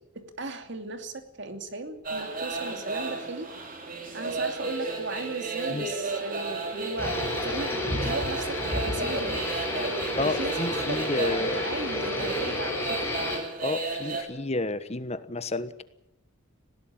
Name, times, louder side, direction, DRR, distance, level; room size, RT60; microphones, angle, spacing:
voice 1, 0.2-3.5 4.1-7.2 7.4-9.5 10.2-10.5 10.9-13.0, right 3 dB, 55° right, 7 dB, 2.8 m, -36 dB
sound 1, 2.0-14.2, right 3 dB, 40° right, 3.7 m, -34 dB
Musical instrument, 4.5-13.0, right 4 dB, 75° right, 7.4 m, -43 dB
sound 2, 7.0-13.4, left 1 dB, 10° left, 6.1 m, -31 dB
voice 2, 10.1-11.6 13.6-15.8, left 2 dB, 30° left, 13 dB, 1.2 m, -30 dB
19.5 x 17.5 x 8.8 m, 0.83 s
head